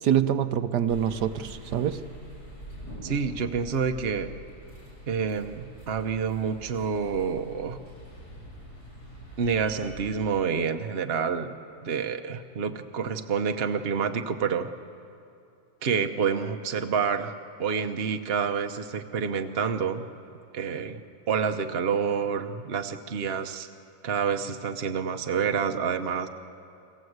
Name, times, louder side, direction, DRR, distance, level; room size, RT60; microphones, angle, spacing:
voice 1, 0.0-2.0, right 9 dB, 75° right, 9 dB, 1.4 m, -25 dB
sound 1, 0.9-10.1, right 1 dB, 70° left, 7.4 m, -44 dB
voice 2, 3.0-4.3 5.1-7.8 9.4-11.6 11.8-14.7 15.8-17.3 17.6-20.1 20.5-23.7 24.0-26.3, right 6 dB, 45° right, 7 dB, 1.0 m, -28 dB
29.5 x 21.5 x 8.0 m, 2.6 s
omnidirectional pair, 1.8 m